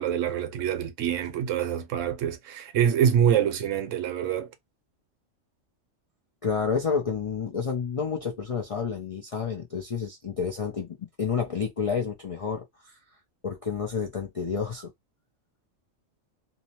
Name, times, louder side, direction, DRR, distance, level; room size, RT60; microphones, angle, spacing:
voice 1, 0.0-4.5, right 9 dB, 75° right, 0.9 m, -25 dB
voice 2, 6.4-13.0 13.4-14.9, left 6 dB, 65° left, 0.3 m, -30 dB
2.7 x 2.0 x 2.8 m
omnidirectional pair, 1.4 m